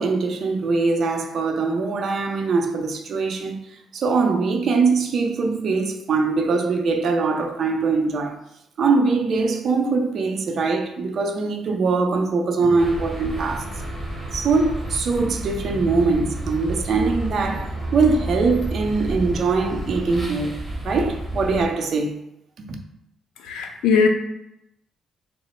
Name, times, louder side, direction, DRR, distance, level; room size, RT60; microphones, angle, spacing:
voice 1, 0.0-3.6 3.9-8.4 8.8-13.7 14.3-20.6 20.8-22.2 22.6-22.7, right 4 dB, 60° right, 0.6 m, -22 dB
sound 1, 12.8-21.6, right 1 dB, 10° right, 1.2 m, -30 dB
voice 2, 23.4-24.1, left 5 dB, 85° left, 0.4 m, -19 dB
3.7 x 2.0 x 4.3 m
cardioid pair, 75°, 0 cm